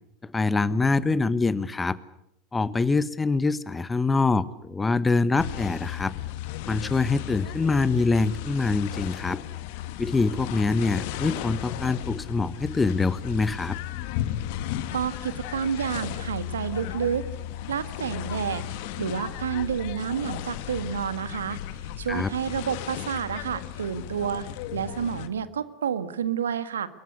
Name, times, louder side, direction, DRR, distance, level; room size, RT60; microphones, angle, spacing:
voice 1, 0.2-2.0 2.5-6.1 6.7-9.4 10.0-13.8 22.1-22.3, left 3 dB, 15° left, 17 dB, 1.2 m, -24 dB
sound 1, 5.4-25.3, left 12 dB, 55° left, 1.8 m, -35 dB
voice 2, 14.9-17.2 17.7-18.6 19.0-21.6 22.0-24.5 24.7-26.9, right 8 dB, 75° right, 13 dB, 1.6 m, -29 dB
24.5 x 22.0 x 8.2 m, 0.77 s
figure-of-eight pair, 80°, 0 cm